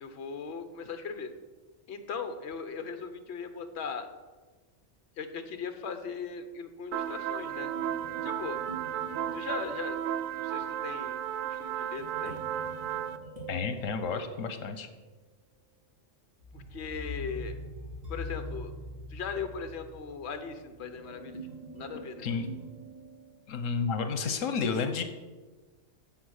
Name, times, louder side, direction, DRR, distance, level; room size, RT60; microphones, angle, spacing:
voice 1, 0.0-1.3 1.9-4.1 5.2-7.7 8.2-8.6 9.3-10.0 10.4-12.4 16.5-17.5 18.1-18.7 19.1-21.4 21.7-22.4, left 5 dB, 60° left, 8 dB, 1.1 m, -39 dB
sound 1, 6.9-13.2, right 10 dB, 85° right, 0.9 m, -34 dB
sound 2, 7.7-10.3 12.0-15.0 16.4-23.7, equal, 35° right, 2.1 m, -44 dB
voice 2, 13.5-14.9 22.2-22.5 23.5-25.0, left 5 dB, 85° left, 8 dB, 1.2 m, -31 dB
9.4 x 7.4 x 6.4 m, 1.3 s
omnidirectional pair, 1.3 m